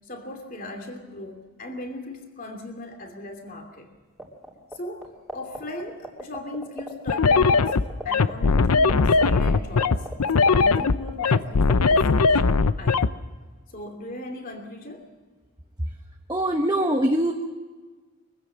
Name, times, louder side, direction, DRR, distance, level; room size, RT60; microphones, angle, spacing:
voice 1, 0.0-3.9 4.7-7.8 8.0-13.2 13.7-15.1, left 1 dB, 40° left, 3 dB, 2.7 m, -38 dB
sound 1, 4.2-4.7 5.0-7.1 7.4-7.5 7.7-11.4 11.6-12.0, right 1 dB, ahead, 2.9 m, -33 dB
sound 2, 7.1-13.1, left 4 dB, 90° left, 0.7 m, -19 dB
voice 2, 16.3-17.3, right 1 dB, 15° right, 2 dB, 1.0 m, -22 dB
23.5 x 15.5 x 7.5 m, 1.4 s
head